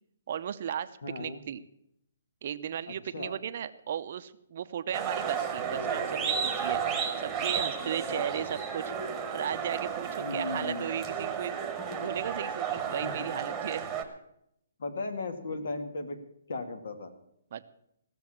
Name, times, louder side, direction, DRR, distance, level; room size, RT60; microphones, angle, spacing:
voice 1, 0.3-0.9 1.2-1.6 2.4-6.8 7.2-8.9 9.3-11.6 12.0-13.9 17.5-17.6, right 9 dB, 45° right, 12 dB, 0.7 m, -35 dB
voice 2, 1.0-1.4 3.1-3.3 8.1-8.3 10.2-10.9 13.0-13.1 14.8-16.2 16.5-17.1, left 3 dB, 70° left, 8 dB, 2.1 m, -36 dB
sound 1, 4.9-14.0, right 7 dB, 10° right, 1.3 m, -33 dB
16.0 x 7.0 x 8.6 m, 0.76 s
hypercardioid pair, 170°, 0 cm